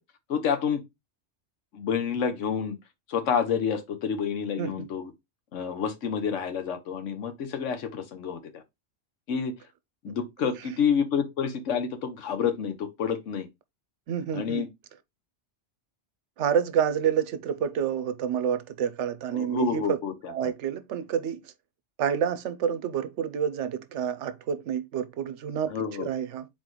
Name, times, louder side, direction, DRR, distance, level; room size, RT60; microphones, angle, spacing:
voice 1, 0.3-0.8 1.7-2.8 3.1-5.1 5.5-8.6 9.3-9.5 10.0-13.5 14.3-14.7 19.3-20.5 25.7-26.1, left 7 dB, 85° left, 1.2 m, -29 dB
voice 2, 4.6-4.9 10.1-10.2 10.4-10.5 14.1-14.7 16.4-20.0 20.3-21.5 22.0-26.5, right 8 dB, 75° right, 0.9 m, -28 dB
4.2 x 3.0 x 3.8 m
omnidirectional pair, 1.2 m